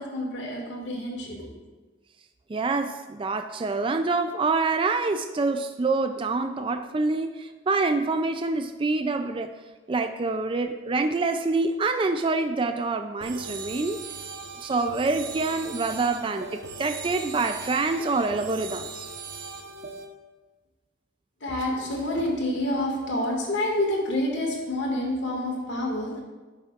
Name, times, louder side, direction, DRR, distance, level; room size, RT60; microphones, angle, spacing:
voice 1, 0.0-1.5 21.4-26.2, left 1 dB, 65° left, -1 dB, 2.1 m, -28 dB
voice 2, 2.5-9.6 9.9-14.0 14.6-19.1, right 3 dB, 25° right, 7 dB, 0.4 m, -26 dB
sound 1, 13.2-20.1, right 4 dB, 65° right, 1.0 m, -39 dB
14.0 x 6.4 x 2.5 m, 1.3 s
head